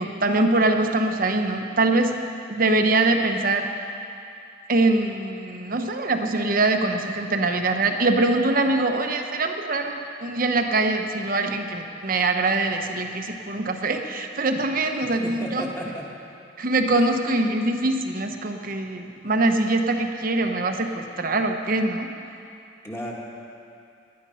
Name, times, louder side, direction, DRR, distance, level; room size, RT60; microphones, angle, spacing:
voice 1, 0.0-2.2 2.5-3.7 4.7-15.7 16.6-22.1, right 2 dB, 45° right, 5 dB, 1.1 m, -23 dB
voice 2, 15.2-16.0 16.9-17.1 22.8-23.1, equal, 15° left, -3 dB, 2.0 m, -34 dB
19.5 x 11.5 x 5.7 m, 2.6 s
head